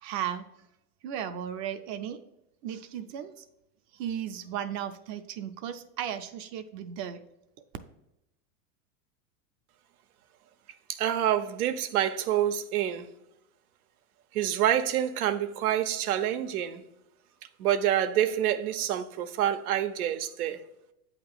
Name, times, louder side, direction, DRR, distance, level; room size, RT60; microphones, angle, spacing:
voice 1, 0.0-0.5 1.0-2.2 2.6-3.4 3.9-7.2, right 9 dB, 40° right, 0.5 m, -35 dB
voice 2, 10.9-13.1 14.3-16.8 17.6-20.6, right 11 dB, 85° right, 0.7 m, -27 dB
7.9 x 2.9 x 5.9 m
supercardioid pair, 125°, 43 cm